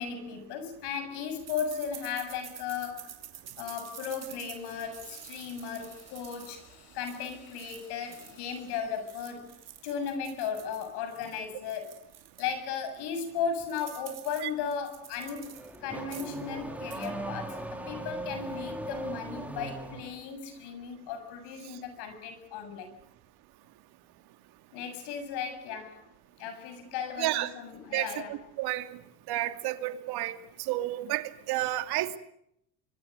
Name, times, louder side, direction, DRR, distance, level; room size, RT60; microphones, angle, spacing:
voice 1, 0.0-3.2 3.6-6.7 6.9-12.1 12.4-22.9 24.7-26.1 26.4-28.4, left 7 dB, 65° left, 7.4 m, -36 dB
sound 1, 1.5-8.6 8.9-12.6 13.0-13.1 13.3-15.8 16.0-16.5 16.8-17.1, right 9 dB, 35° right, 4.6 m, -49 dB
sound 2, 4.2-9.8, left 6 dB, 80° left, 7.5 m, -58 dB
Car / Accelerating revving vroom, 15.2-20.2, right 1 dB, 5° right, 4.3 m, -39 dB
voice 2, 27.2-27.5 27.9-28.9 29.3-30.4 30.7-32.2, right 15 dB, 60° right, 2.6 m, -31 dB
25.0 x 24.0 x 6.6 m
supercardioid pair, 120°, 44 cm